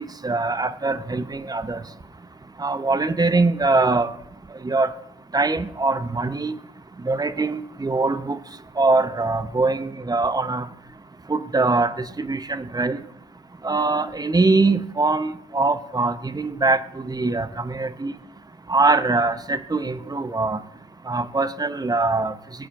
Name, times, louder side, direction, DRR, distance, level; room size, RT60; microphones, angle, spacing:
voice 1, 0.0-1.8 2.6-4.1 4.6-4.9 5.3-6.5 7.0-8.4 8.8-10.7 11.3-13.0 13.6-18.2 18.7-20.6 21.1-22.3, right 3 dB, 20° right, 11 dB, 0.9 m, -22 dB
19.5 x 8.6 x 2.6 m, 0.78 s
hypercardioid pair, 50°, 19 cm